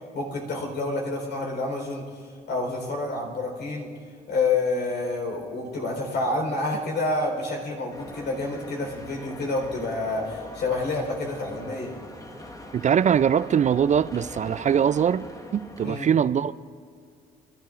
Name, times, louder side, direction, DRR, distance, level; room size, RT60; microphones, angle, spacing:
voice 1, 0.1-3.9 4.3-11.9 15.8-16.1, left 2 dB, 60° left, 1 dB, 4.2 m, -28 dB
sound 1, 7.9-16.0, left 1 dB, 15° left, 1.6 m, -42 dB
voice 2, 12.7-16.5, right 8 dB, 40° right, 15 dB, 0.4 m, -22 dB
28.0 x 13.0 x 2.6 m, 2.1 s
hypercardioid pair, 60°, 19 cm